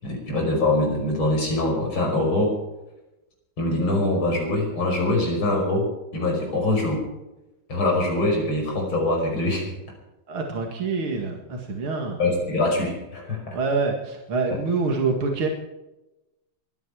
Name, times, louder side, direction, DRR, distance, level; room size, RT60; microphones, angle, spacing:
voice 1, 0.0-2.6 3.6-7.0 7.7-9.8 12.2-13.6 14.5-14.6, left 2 dB, 70° left, 1 dB, 6.2 m, -23 dB
voice 2, 10.3-12.2 13.5-15.5, right 4 dB, 80° right, 2 dB, 3.0 m, -26 dB
23.5 x 10.5 x 4.9 m, 0.97 s
omnidirectional pair, 2.3 m